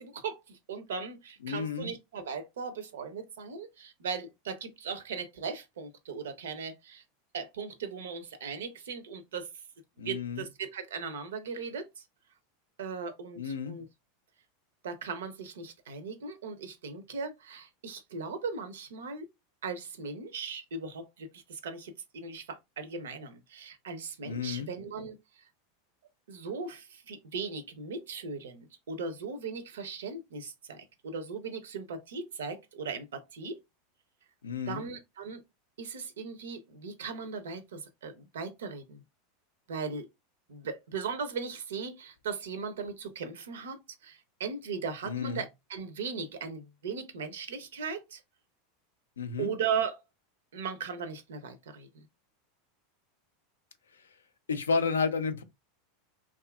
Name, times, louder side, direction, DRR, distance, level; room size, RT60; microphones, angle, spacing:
voice 1, 0.0-7.0 7.3-9.5 10.0-12.0 12.8-13.9 14.8-19.3 19.6-25.4 26.3-33.6 34.7-35.4 35.8-39.0 39.7-40.1 40.5-48.2 49.4-50.0 50.5-52.0, right 5 dB, 75° right, 0.5 m, -38 dB
voice 2, 1.4-1.9 10.0-10.4 13.4-13.8 24.2-24.7 34.4-34.8 45.0-45.4 49.2-49.5 54.5-55.4, left 5 dB, 85° left, 0.4 m, -31 dB
2.6 x 2.3 x 2.3 m
hypercardioid pair, 90°, 0 cm